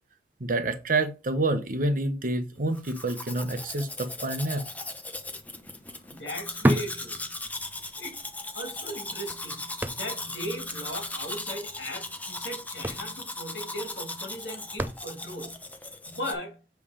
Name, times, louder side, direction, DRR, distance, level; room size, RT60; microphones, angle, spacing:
voice 1, 0.4-4.6, right 2 dB, 50° right, 1.0 m, -28 dB
Domestic sounds home sounds, 2.7-16.3, left 2 dB, 10° left, 0.8 m, -38 dB
sound 1, 5.5-7.9 8.2-8.3 8.9-10.5 10.7-10.8 11.1-11.3 12.2-12.4 12.6-15.5 16.1-16.2, right 1 dB, 10° right, 0.4 m, -31 dB
voice 2, 6.1-7.3 8.0-8.2 8.5-15.6 16.0-16.6, equal, 70° left, 2.4 m, -37 dB
7.3 x 3.5 x 4.9 m
head